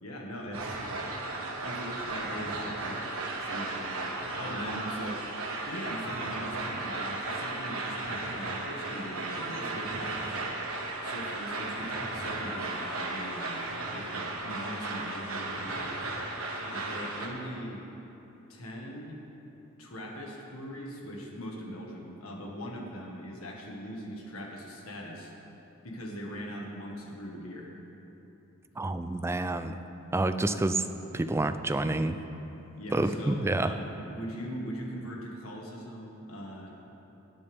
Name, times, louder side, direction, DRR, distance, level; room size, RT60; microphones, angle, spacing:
voice 1, 0.0-1.2 1.6-3.0 3.4-4.1 4.3-5.2 5.7-10.4 11.0-15.9 16.6-17.8 18.5-19.2 19.8-25.3 25.8-27.7 32.8-36.7, equal, 90° left, -1 dB, 1.7 m, -41 dB
sound 1, 0.5-17.3, right 2 dB, 85° right, 1.4 m, -35 dB
voice 2, 28.8-29.8 30.1-30.8 31.1-32.2 32.9-33.7, right 2 dB, 10° right, 10 dB, 0.4 m, -28 dB
17.5 x 9.7 x 3.6 m, 3.0 s
head